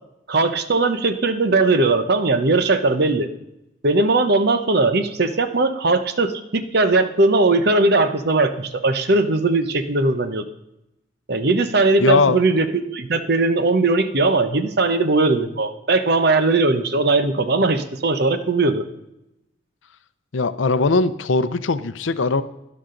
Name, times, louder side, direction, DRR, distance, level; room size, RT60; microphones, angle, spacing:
voice 1, 0.3-3.3 3.8-10.4 11.3-18.8, right 3 dB, 55° right, 10 dB, 0.9 m, -19 dB
voice 2, 12.0-12.4 20.3-22.4, left 3 dB, 80° left, 13 dB, 0.6 m, -19 dB
12.0 x 11.0 x 3.9 m, 0.89 s
head